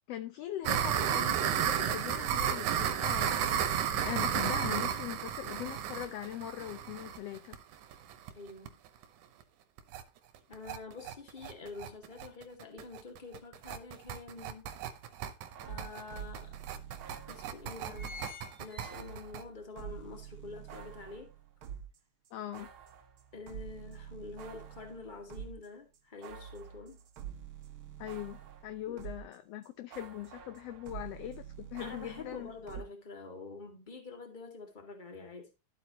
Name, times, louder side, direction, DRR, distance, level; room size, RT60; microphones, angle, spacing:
voice 1, 0.1-3.6 3.9-7.6 22.3-22.7 28.0-32.5, left 12 dB, 75° left, 1.6 m, -41 dB
sound 1, 0.7-8.3 8.7-8.8 9.0-9.1 9.4-9.5 9.8-10.0 10.4-19.4, right 9 dB, 90° right, 2.4 m, -33 dB
voice 2, 8.3-8.8 10.5-14.7 15.7-16.6 17.3-18.3 18.6-21.3 23.3-27.0 28.9-29.0 31.8-35.5, left 4 dB, 20° left, 1.9 m, -47 dB
sound 2, 14.3-15.5 16.1-16.2 16.4-16.5 17.2-17.4 17.7-19.5 19.9-20.0, left 5 dB, 45° left, 3.4 m, -49 dB
sound 3, 15.4-18.3 18.8-22.0 22.3-29.4 29.6-32.8, right 9 dB, 60° right, 1.5 m, -47 dB
12.5 x 8.3 x 3.0 m
omnidirectional pair, 3.3 m